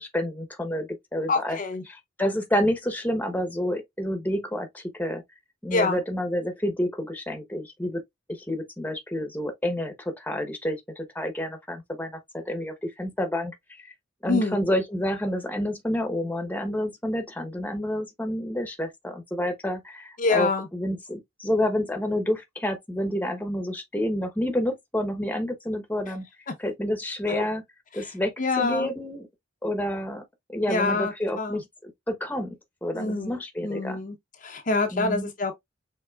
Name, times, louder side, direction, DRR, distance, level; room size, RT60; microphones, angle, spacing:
voice 1, 0.0-1.6 1.9-5.2 5.6-8.0 8.3-13.8 14.2-26.2 26.6-27.6 27.9-29.3 29.6-30.2 30.5-31.6 32.1-32.6 32.8-34.0 34.9-35.3, left 1 dB, 10° left, 1.0 m, -29 dB
voice 2, 1.3-1.8 5.7-6.0 14.3-14.6 20.2-20.7 26.5-26.6 27.3-27.4 27.9-28.1 28.4-28.9 30.7-31.6 32.9-33.4 33.6-34.2 34.4-35.5, left 3 dB, 40° left, 0.8 m, -26 dB
5.8 x 3.7 x 2.3 m
head